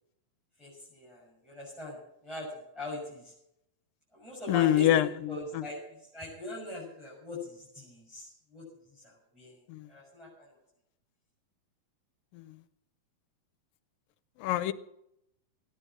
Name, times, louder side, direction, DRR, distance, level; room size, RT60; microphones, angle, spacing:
voice 1, 0.6-2.0 2.2-3.3 4.1-5.8 6.1-8.6 9.0-9.6 9.9-10.5, left 1 dB, ahead, -5 dB, 6.1 m, -41 dB
voice 2, 4.5-5.6 9.7-9.9 14.4-14.7, left 12 dB, 80° left, 12 dB, 2.4 m, -26 dB
16.5 x 9.9 x 7.3 m, 0.79 s
omnidirectional pair, 4.1 m